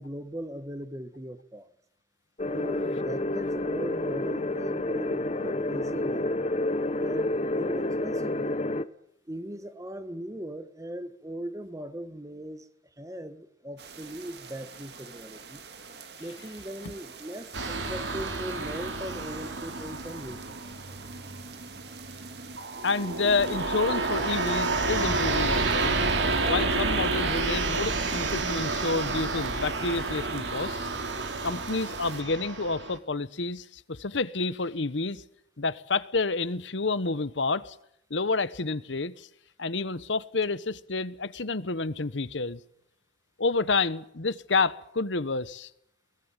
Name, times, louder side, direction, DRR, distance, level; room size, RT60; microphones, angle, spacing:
voice 1, 0.0-1.7 2.5-6.3 7.0-8.6 9.3-12.7 13.0-15.6 16.2-20.6, right 1 dB, 15° right, 1.4 m, -39 dB
sound 1, 2.4-8.8, left 2 dB, 35° left, 1.0 m, -29 dB
sound 2, 13.8-32.2, right 5 dB, 60° right, 2.3 m, -47 dB
sound 3, 17.5-33.0, right 3 dB, 75° right, 2.8 m, -30 dB
voice 2, 22.8-26.0 26.4-30.8 31.4-35.2 35.6-37.8 38.1-39.3 39.6-42.6 43.4-45.7, left 3 dB, 80° left, 1.1 m, -29 dB
22.5 x 19.5 x 9.1 m
head